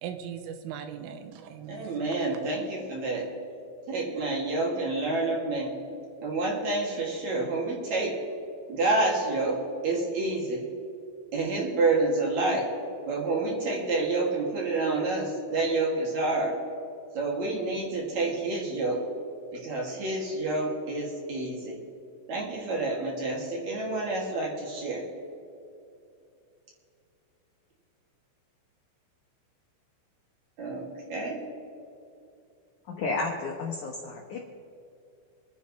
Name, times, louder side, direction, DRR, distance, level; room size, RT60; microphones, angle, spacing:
voice 1, 0.0-2.0 2.3-2.4, right 8 dB, 90° right, 7 dB, 3.5 m, -39 dB
voice 2, 1.7-3.3 3.9-5.7 6.2-8.1 8.7-9.6 9.8-10.6 11.3-12.7 13.0-16.6 17.1-19.0 19.5-21.7 22.3-25.0 30.6-31.4, right 2 dB, 45° right, -2 dB, 2.9 m, -28 dB
voice 3, 33.0-34.4, left 3 dB, 90° left, -1 dB, 1.7 m, -32 dB
28.0 x 10.0 x 3.2 m, 2.6 s
omnidirectional pair, 5.7 m